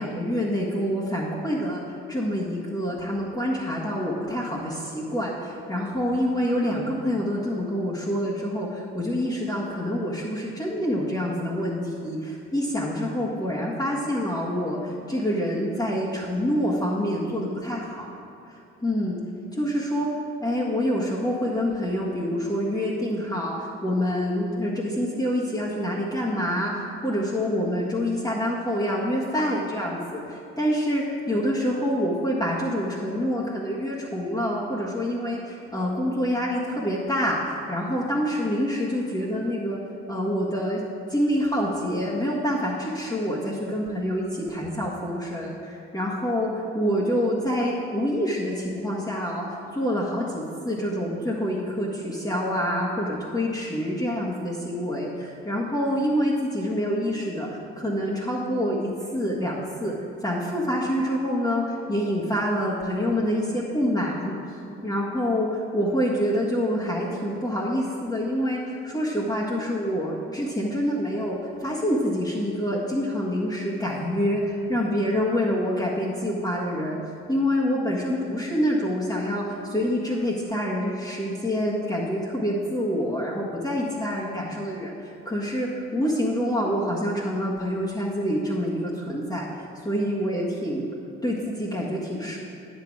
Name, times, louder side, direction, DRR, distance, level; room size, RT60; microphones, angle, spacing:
voice 1, 0.0-1.8 2.1-18.1 18.5-19.2 19.5-20.1 20.4-39.8 40.1-40.8 41.1-59.9 60.2-64.4 64.8-90.9 91.2-92.4, equal, 15° left, -7 dB, 1.6 m, -26 dB
9.4 x 6.5 x 4.8 m, 2.6 s
hypercardioid pair, 50°, 30 cm